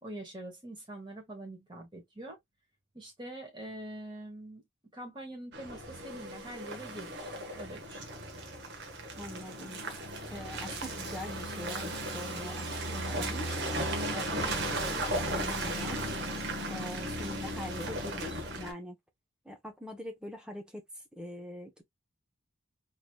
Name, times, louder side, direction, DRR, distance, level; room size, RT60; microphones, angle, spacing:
voice 1, 0.0-2.4 2.9-4.6 4.9-8.0, right 1 dB, 20° right, 1.7 m, -44 dB
Car passing by / Engine, 5.5-18.7, right 1 dB, 50° right, 1.1 m, -36 dB
voice 2, 9.2-9.8 10.3-13.6 14.1-16.1 16.7-19.0 19.4-20.8 21.1-21.8, left 1 dB, 5° right, 0.8 m, -43 dB
3.9 x 3.2 x 2.2 m
head